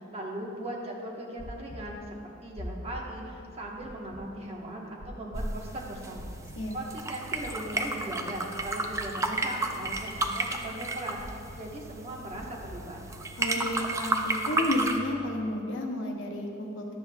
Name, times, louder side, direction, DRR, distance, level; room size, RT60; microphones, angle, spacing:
voice 1, 0.0-2.0 2.4-6.3 6.7-11.2 11.6-13.0, right 1 dB, 35° right, -2 dB, 1.1 m, -38 dB
sound 1, 1.4-1.8 2.6-3.0 3.8-4.2 5.0-5.4 6.1-6.6 7.3-7.7 8.6-9.0 9.8-10.2 11.2-11.6 12.3-12.7, left 1 dB, 55° left, 1.1 m, -44 dB
sound 2, 5.3-15.0, right 2 dB, 15° right, 0.4 m, -33 dB
voice 2, 13.4-16.9, left 1 dB, 75° left, 1 dB, 0.9 m, -31 dB
11.5 x 8.0 x 2.2 m, 2.7 s
head